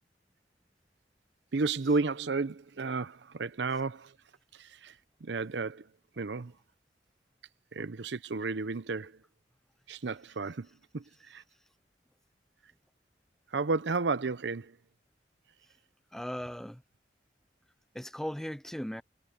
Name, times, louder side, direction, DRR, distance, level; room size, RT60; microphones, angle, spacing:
voice 1, 1.5-4.1 4.5-4.9 5.2-5.9 6.2-6.5 7.7-9.2 9.9-10.7 10.9-11.4 13.5-14.8, right 4 dB, 75° right, 0.7 m, -32 dB
voice 2, 16.1-16.8 17.9-19.0, equal, 5° left, 0.4 m, -37 dB
head